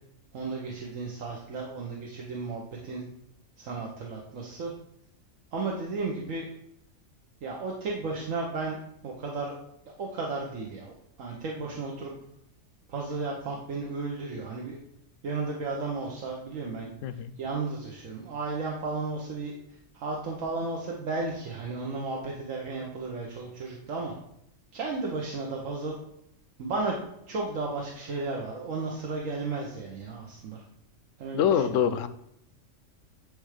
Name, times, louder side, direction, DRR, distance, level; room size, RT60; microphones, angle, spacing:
voice 1, 0.3-3.0 3.6-4.7 5.5-6.5 7.4-8.8 9.0-9.6 10.0-10.9 11.2-12.1 12.9-14.8 15.2-16.9 17.4-19.5 19.9-24.1 24.7-26.0 26.6-26.9 27.3-30.6 31.2-31.8, right 3 dB, 80° right, -2 dB, 1.4 m, -34 dB
voice 2, 31.3-32.1, left 8 dB, 75° left, 12 dB, 0.9 m, -25 dB
10.0 x 3.4 x 4.9 m, 0.76 s
omnidirectional pair, 1.3 m